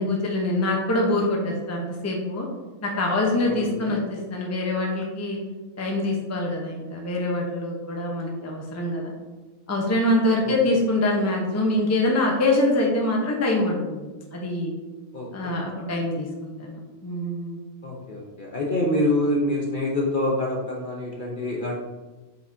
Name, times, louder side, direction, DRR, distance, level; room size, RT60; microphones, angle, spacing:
voice 1, 0.0-2.5 2.8-5.4 5.8-9.1 9.7-14.1 14.3-14.7 15.3-17.6, left 2 dB, 15° left, -1 dB, 0.8 m, -24 dB
voice 2, 3.5-4.0 10.4-10.5 15.1-15.5 17.8-21.8, left 1 dB, 40° left, -2 dB, 0.9 m, -26 dB
7.9 x 4.7 x 2.8 m, 1.2 s
omnidirectional pair, 1.5 m